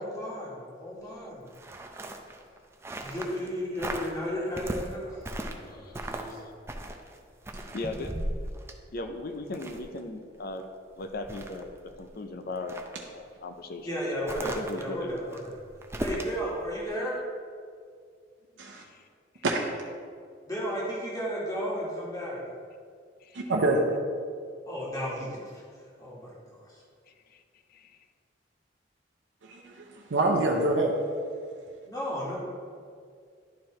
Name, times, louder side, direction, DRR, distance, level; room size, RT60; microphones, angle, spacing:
voice 1, 0.0-1.4 3.0-5.3 5.6-6.4 13.8-15.6 16.0-17.1 20.5-22.4 24.6-25.6 26.0-26.8 31.8-32.4, equal, 20° left, -5 dB, 1.6 m, -34 dB
sound 1, 1.5-3.5 3.8-4.2 4.6-5.7 5.9-6.4 6.7-10.0 10.4-10.5 10.9-12.1 12.5-13.0 14.3-16.4 16.8-17.0, right 1 dB, 15° right, 0.4 m, -37 dB
voice 2, 5.7-6.4 7.7-8.2 8.9-10.6 11.0-12.8 13.1-13.9 14.4-15.3 18.6-19.1 19.3-19.4 23.2-23.5 27.3-27.4 27.7-28.0, left 2 dB, 55° left, 7 dB, 0.5 m, -38 dB
voice 3, 23.3-23.8 29.4-30.9, right 2 dB, 90° right, -1 dB, 0.7 m, -26 dB
11.0 x 4.6 x 3.1 m, 2.2 s
head